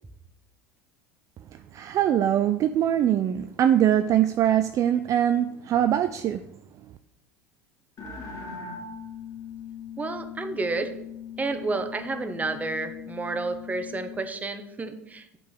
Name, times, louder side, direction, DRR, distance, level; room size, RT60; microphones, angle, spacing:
voice 1, 1.7-6.4, right 10 dB, 40° right, 10 dB, 0.4 m, -22 dB
sound 1, 8.0-14.3, left 6 dB, 45° left, 2.0 m, -40 dB
voice 2, 10.0-10.9 11.4-15.4, right 3 dB, 20° right, 8 dB, 0.9 m, -30 dB
7.2 x 3.9 x 6.4 m, 0.83 s
hypercardioid pair, 80°, 8 cm